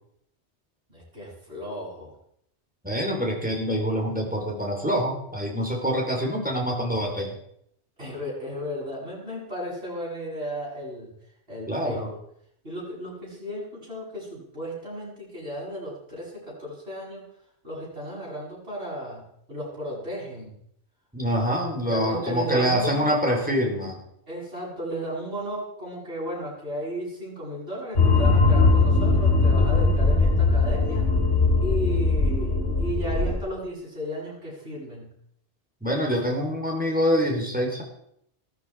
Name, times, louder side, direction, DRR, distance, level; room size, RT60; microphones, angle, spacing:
voice 1, 0.9-2.1 8.0-11.1 11.5-12.2 12.6-17.2 17.6-20.6 21.9-23.1 24.3-31.1 31.6-35.1, equal, 60° right, -5 dB, 7.7 m, -34 dB
voice 2, 2.8-7.4 11.7-12.1 21.1-24.0 35.8-37.8, equal, 5° right, 0 dB, 4.0 m, -25 dB
sound 1, 28.0-33.4, left 3 dB, 70° left, 3.2 m, -20 dB
16.0 x 14.0 x 4.9 m, 0.72 s
omnidirectional pair, 1.2 m